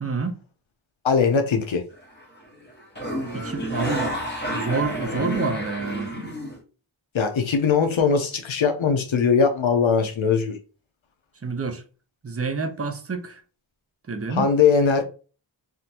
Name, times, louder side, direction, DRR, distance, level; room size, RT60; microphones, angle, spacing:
voice 1, 0.0-0.4 3.3-6.1 11.4-11.8 12.2-13.4 14.1-14.5, right 4 dB, 30° right, 0.6 m, -28 dB
voice 2, 1.0-1.8 7.1-10.6 14.3-15.0, left 5 dB, 70° left, 0.7 m, -20 dB
sound 1, 1.9-2.4 2.6-6.6, equal, 20° left, 1.3 m, -29 dB
3.6 x 2.5 x 2.8 m
wide cardioid pair, 65°, 48 cm